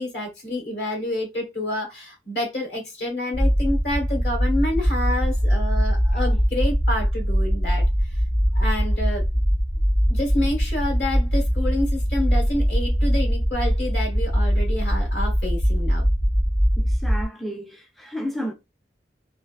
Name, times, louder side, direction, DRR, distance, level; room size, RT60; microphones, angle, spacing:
voice 1, 0.0-7.8 8.1-8.2 8.5-9.2 10.1-16.1, left 1 dB, 65° left, 1.4 m, -28 dB
sound 1, 3.3-17.2, equal, 25° left, 0.7 m, -21 dB
voice 2, 16.8-18.5, equal, ahead, 0.3 m, -32 dB
3.4 x 2.5 x 2.4 m
head